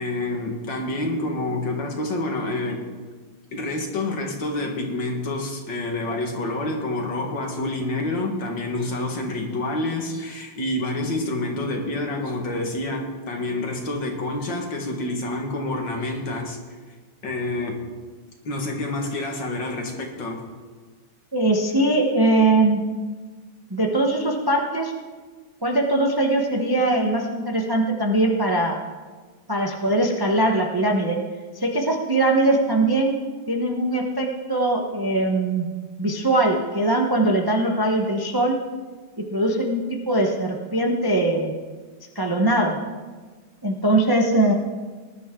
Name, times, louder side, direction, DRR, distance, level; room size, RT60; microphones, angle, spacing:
voice 1, 0.0-2.9 3.5-16.6 17.2-17.8 18.4-20.4, left 2 dB, 60° left, 2 dB, 2.4 m, -28 dB
voice 2, 21.3-22.8 23.7-24.9 25.6-28.8 29.5-31.2 31.5-33.1 33.5-35.7 36.0-38.6 39.3-39.8 40.1-41.5 42.1-42.8 43.6-44.5, right 2 dB, 20° right, 1 dB, 0.7 m, -21 dB
19.5 x 11.0 x 3.8 m, 1.4 s
omnidirectional pair, 2.3 m